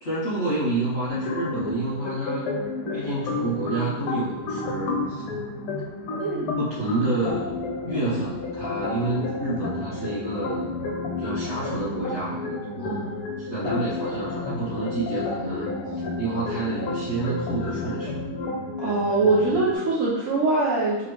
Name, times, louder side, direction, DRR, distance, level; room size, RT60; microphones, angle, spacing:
voice 1, 0.0-2.5 2.9-5.2 6.6-7.6 7.8-10.7 11.2-13.1 13.4-18.2 19.5-19.6, right 2 dB, 50° left, -10 dB, 0.8 m, -29 dB
sound 1, 1.1-19.8, left 3 dB, 90° left, 1.8 m, -31 dB
voice 2, 6.2-6.5 12.8-13.2 18.8-21.1, right 3 dB, 65° right, -7 dB, 0.7 m, -23 dB
5.1 x 3.1 x 3.0 m, 1.0 s
omnidirectional pair, 2.4 m